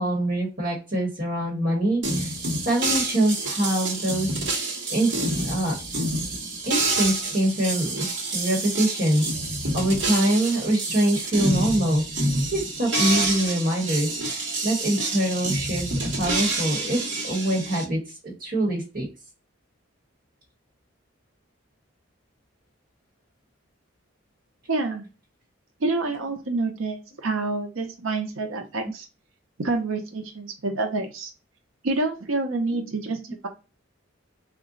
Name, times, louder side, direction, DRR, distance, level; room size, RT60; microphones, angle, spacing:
voice 1, 0.0-4.3 4.5-5.7 6.6-8.1 8.3-9.2 9.7-19.1 32.7-32.8, right 1 dB, 45° right, -2 dB, 1.2 m, -25 dB
sound 1, 2.0-17.8, right 2 dB, 60° right, 1.0 m, -28 dB
voice 2, 24.7-25.1 25.8-29.1 29.6-31.3 31.8-33.5, right 3 dB, 80° right, 4 dB, 0.6 m, -27 dB
3.8 x 2.2 x 3.7 m, 0.30 s
head